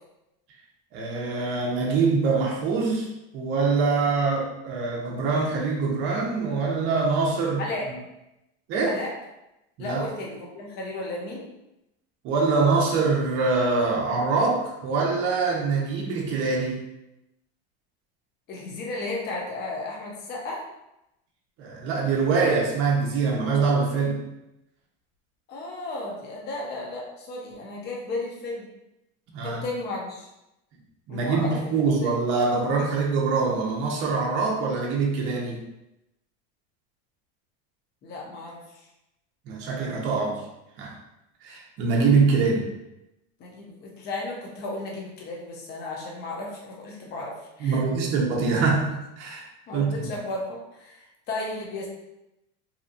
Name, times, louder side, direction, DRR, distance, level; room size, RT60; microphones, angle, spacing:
voice 1, 0.9-3.1 3.3-7.6 7.9-8.0 8.7-9.0 9.8-10.0 12.2-16.8 21.6-24.2 29.3-29.7 31.1-35.6 39.5-40.4 40.8-40.9 41.4-42.7 47.6-49.5 49.7-50.0, right 4 dB, 40° right, -2 dB, 0.6 m, -24 dB
voice 2, 9.8-11.5 18.5-20.6 25.5-28.7 29.4-30.3 31.1-32.1 38.0-38.9 43.4-47.8 49.7-51.9, left 2 dB, 35° left, -2 dB, 0.6 m, -34 dB
2.8 x 2.2 x 2.5 m, 0.90 s
cardioid pair, 155°, 30 cm